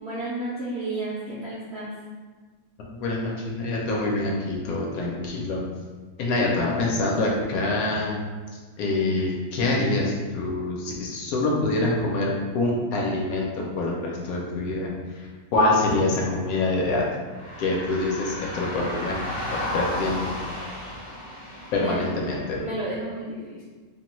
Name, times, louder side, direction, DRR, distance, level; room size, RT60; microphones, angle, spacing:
voice 1, 0.0-2.0 6.3-6.5 21.7-22.2 22.6-23.6, right 1 dB, 70° right, -7 dB, 0.6 m, -32 dB
voice 2, 3.0-5.6 6.2-8.2 8.8-14.9 15.2-17.1 17.6-19.2 19.5-20.3 21.7-22.6, left 2 dB, 75° left, -2 dB, 1.0 m, -25 dB
sound 1, 17.3-22.5, left 1 dB, 35° left, 0.5 m, -33 dB
2.7 x 2.2 x 3.0 m, 1.4 s
omnidirectional pair, 1.7 m